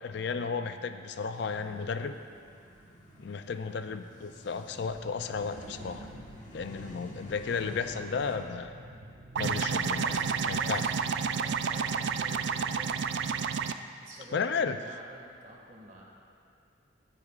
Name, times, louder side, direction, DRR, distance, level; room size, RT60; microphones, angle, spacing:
voice 1, 0.0-2.1 3.2-6.1 6.5-8.7 9.4-10.2 10.5-10.8 14.3-14.8, left 5 dB, 60° left, 9 dB, 0.4 m, -33 dB
sound 1, 1.3-8.4, equal, 40° left, 1.4 m, -50 dB
sound 2, 4.8-11.6 12.1-12.2, equal, 90° right, 1.6 m, -50 dB
sound 3, 9.4-13.7, right 6 dB, 60° right, 0.4 m, -30 dB
voice 2, 10.0-13.5 14.0-16.0, right 1 dB, 40° right, -2 dB, 1.7 m, -50 dB
18.0 x 9.8 x 2.4 m, 2.3 s
head